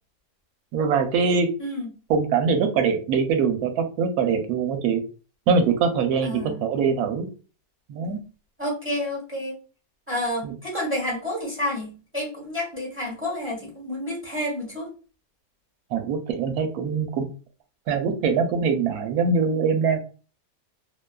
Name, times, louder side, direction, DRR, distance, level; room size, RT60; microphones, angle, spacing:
voice 1, 0.7-1.5 2.1-5.0 5.5-7.3 7.9-8.2 10.4-10.5 15.9-17.3 17.9-20.0, right 5 dB, 75° right, 6 dB, 1.0 m, -23 dB
voice 2, 1.6-1.9 6.2-6.6 8.6-9.6 10.1-14.9, left 1 dB, 10° right, -4 dB, 0.9 m, -29 dB
2.8 x 2.2 x 2.2 m, 0.35 s
omnidirectional pair, 1.6 m